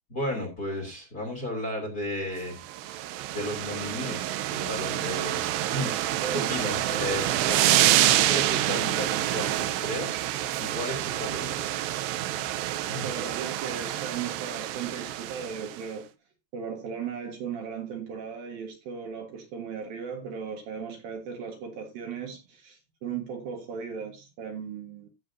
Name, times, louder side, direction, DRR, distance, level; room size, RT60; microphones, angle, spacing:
voice 1, 0.1-3.0 3.3-5.4 5.7-10.2 10.6-11.7 12.9-13.1, left 1 dB, 25° left, 3.0 m, -34 dB
sound 1, 2.6-15.8, right 14 dB, 80° right, 2.8 m, -27 dB
voice 2, 6.2-6.5 6.8-7.1 12.8-16.1 16.5-25.1, right 6 dB, 60° right, 3.1 m, -37 dB
15.5 x 7.6 x 2.7 m
omnidirectional pair, 5.0 m